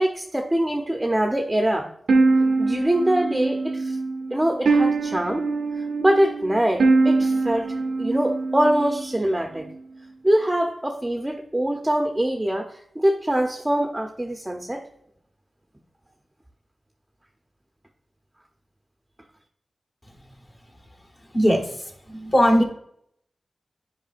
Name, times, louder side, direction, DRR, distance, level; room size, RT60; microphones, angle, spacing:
voice 1, 0.0-1.9 2.6-3.9 4.3-5.5 6.0-9.7 10.2-12.7 13.0-14.8, right 1 dB, 15° right, 2 dB, 0.7 m, -23 dB
sound 1, 2.1-9.2, right 3 dB, 90° right, 0.6 m, -23 dB
voice 2, 21.3-21.8 22.1-22.6, equal, 30° left, 2 dB, 1.3 m, -19 dB
9.2 x 4.9 x 2.5 m, 0.71 s
wide cardioid pair, 75°, 0 cm